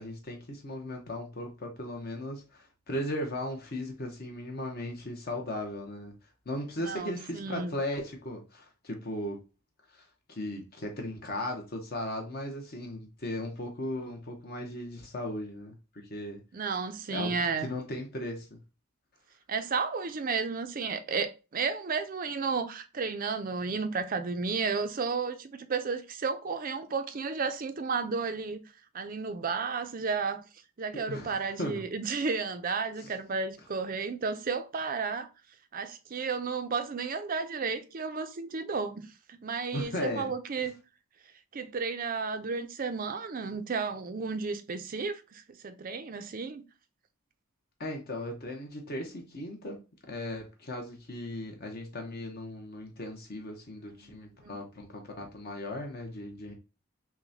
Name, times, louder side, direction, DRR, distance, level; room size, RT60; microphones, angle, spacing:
voice 1, 0.0-6.1 6.5-9.4 9.9-15.7 16.1-16.4 17.1-18.6 30.9-31.8 33.0-33.1 39.7-40.3 47.8-49.8 50.1-56.5, left 1 dB, 45° left, 0.7 m, -37 dB
voice 2, 6.8-7.8 16.5-17.7 19.5-28.6 28.9-30.4 30.8-35.3 35.7-40.7 41.5-46.6 54.0-54.6, right 4 dB, 40° right, 0.4 m, -33 dB
5.8 x 2.1 x 2.7 m
head